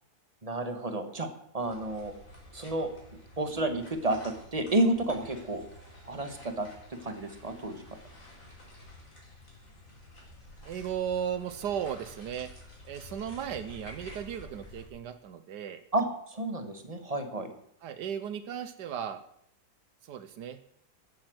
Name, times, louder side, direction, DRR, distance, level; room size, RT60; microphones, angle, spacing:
voice 1, 0.4-1.3 1.5-2.1 2.5-2.9 3.4-5.6 6.0-7.8 15.9-17.5, right 1 dB, 20° right, 7 dB, 1.6 m, -31 dB
sound 1, 1.6-14.9, left 1 dB, 50° left, 4.9 m, -50 dB
voice 2, 10.6-12.5 12.8-15.8 17.8-19.2 20.0-20.6, right 9 dB, 85° right, 10 dB, 1.5 m, -35 dB
14.0 x 8.8 x 7.9 m, 0.73 s
omnidirectional pair, 1.8 m